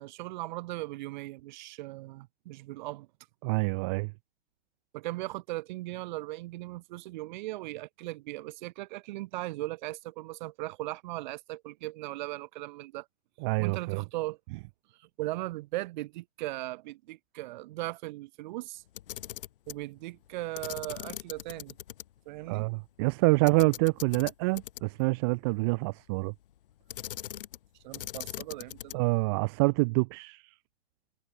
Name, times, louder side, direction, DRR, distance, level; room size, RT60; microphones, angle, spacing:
voice 1, 0.0-3.1 4.9-13.1 13.6-14.4 15.0-18.8 19.7-21.8 22.3-22.7 27.8-29.0, right 18 dB, 45° right, 2.2 m, -38 dB
voice 2, 3.4-4.1 13.4-14.0 22.5-26.3 28.9-30.4, right 28 dB, 25° right, 0.5 m, -27 dB
Camera, 18.9-19.8 20.6-22.0 22.4-22.5 23.5-25.1 26.9-27.7 27.9-29.1, left 12 dB, 55° left, 3.5 m, -41 dB
figure-of-eight pair, 115°, 33 cm